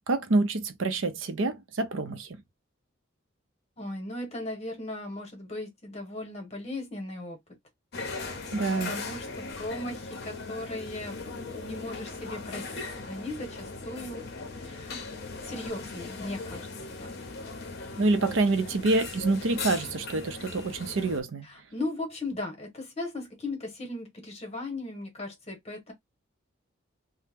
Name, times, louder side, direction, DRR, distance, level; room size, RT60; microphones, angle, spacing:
voice 1, 0.1-2.4 8.5-9.0 18.0-21.5, right 2 dB, 65° right, 0.6 m, -27 dB
voice 2, 3.8-7.4 8.1-14.3 14.6-15.1 15.4-16.7 17.0-17.1 18.2-18.3 21.5-25.9, left 2 dB, 30° left, 1.0 m, -37 dB
sound 1, 7.9-21.2, left 3 dB, 50° left, 0.6 m, -39 dB
2.8 x 2.0 x 3.4 m
head